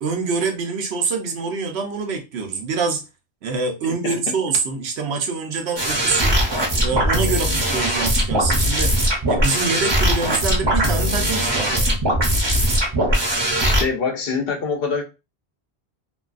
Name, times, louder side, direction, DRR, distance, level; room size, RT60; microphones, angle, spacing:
voice 1, 0.0-3.0 3.4-6.4 6.8-12.0, right 4 dB, 75° right, 0.9 m, -25 dB
sound 1, 5.8-13.8, equal, 30° right, 0.6 m, -20 dB
voice 2, 13.6-15.0, left 5 dB, 65° left, 0.8 m, -24 dB
2.6 x 2.3 x 2.3 m
omnidirectional pair, 1.1 m